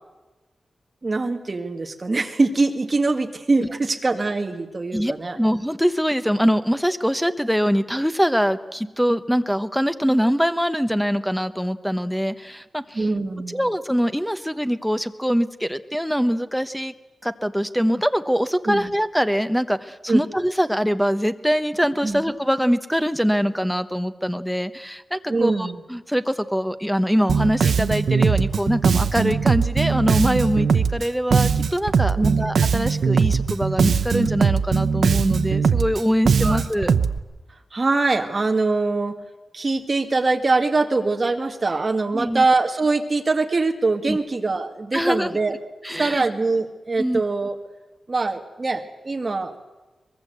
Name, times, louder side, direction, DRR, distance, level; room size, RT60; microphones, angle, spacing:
voice 1, 1.0-5.4 12.9-13.7 18.7-18.9 20.1-20.2 22.0-22.2 25.3-25.8 32.2-32.5 36.4-36.6 37.7-39.2 39.5-45.6 46.0-47.6 48.1-49.6, right 3 dB, 30° right, 5 dB, 2.0 m, -23 dB
voice 2, 4.9-13.0 13.5-16.9 17.2-36.9 42.1-42.4 44.1-44.2 44.9-45.3 45.8-46.2 47.0-47.2, equal, ahead, 11 dB, 1.0 m, -23 dB
Bass guitar, 27.3-37.2, right 6 dB, 80° right, 0.9 m, -20 dB
23.5 x 21.5 x 8.1 m, 1.1 s
wide cardioid pair, 165°, 0 cm